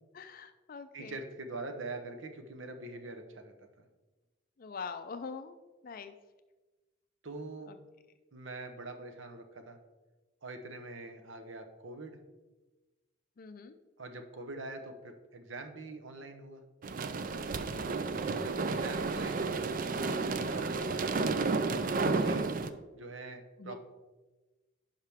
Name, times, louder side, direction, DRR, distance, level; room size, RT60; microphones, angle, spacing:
voice 1, 0.1-1.2 4.6-6.1 7.7-7.8 13.4-13.8 17.7-18.1 22.2-22.4 23.6-23.8, left 5 dB, 45° left, 9 dB, 0.4 m, -44 dB
voice 2, 0.9-3.9 7.2-7.7 8.3-9.8 10.4-12.2 14.0-16.6 18.3-21.3 22.1-22.5 22.9-23.8, right 2 dB, 70° right, 6 dB, 1.0 m, -44 dB
sound 1, 16.8-22.7, right 3 dB, 45° right, 0.4 m, -32 dB
10.0 x 5.7 x 3.5 m, 1.2 s
head